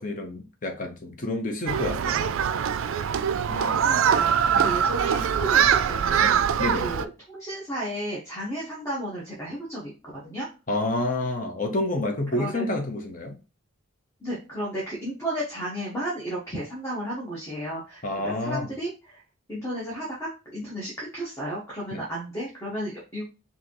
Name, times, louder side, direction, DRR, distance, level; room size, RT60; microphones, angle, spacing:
voice 1, 0.0-2.4 4.5-4.8 6.6-6.9 10.7-13.4 18.0-18.7 21.9-22.0, left 2 dB, 40° left, 0.8 m, -29 dB
Human group actions, 1.7-7.0, right 8 dB, 75° right, 0.3 m, -23 dB
voice 2, 3.5-9.9 10.2-10.5 12.3-12.7 14.2-19.2 19.5-23.2, right 1 dB, 15° left, 1.2 m, -33 dB
5.0 x 2.8 x 2.9 m
head